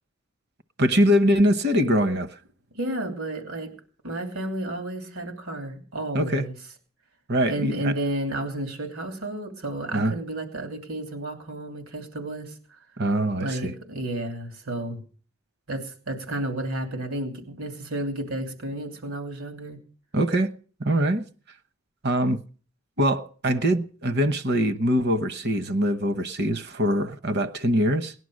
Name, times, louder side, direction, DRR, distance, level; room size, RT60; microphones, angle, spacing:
voice 1, 0.8-2.4 6.1-6.5 7.3-8.0 9.9-10.2 13.0-13.7 20.1-20.5 20.8-21.2 22.0-22.4 23.0-28.1, equal, 55° right, 1.0 m, -23 dB
voice 2, 2.7-3.7 4.0-6.5 7.5-12.5 13.3-15.0 15.7-19.8, right 1 dB, 85° right, 3.0 m, -32 dB
18.5 x 11.0 x 6.4 m
head